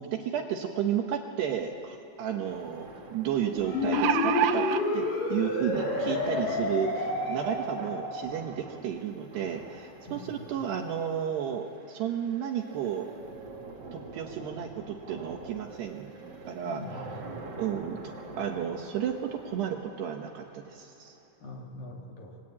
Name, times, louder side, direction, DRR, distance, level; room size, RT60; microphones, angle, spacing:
voice 1, 0.0-4.7 4.9-13.1 13.9-16.2 16.5-17.1 17.6-18.0 18.4-21.2, right 9 dB, 70° right, 3 dB, 2.9 m, -32 dB
sound 1, 1.5-1.6 1.9-2.0 3.6-4.8 5.7-5.8 6.2-6.3, right 12 dB, 90° right, 3.6 m, -27 dB
sound 2, 2.4-21.5, right 2 dB, 35° right, 1.6 m, -45 dB
sound 3, 3.6-8.4, left 3 dB, 85° left, 6.2 m, -30 dB
voice 2, 10.0-10.6 16.6-17.6 21.4-22.4, left 1 dB, 55° left, 0 dB, 3.3 m, -43 dB
29.0 x 21.5 x 8.8 m, 2.6 s
omnidirectional pair, 5.9 m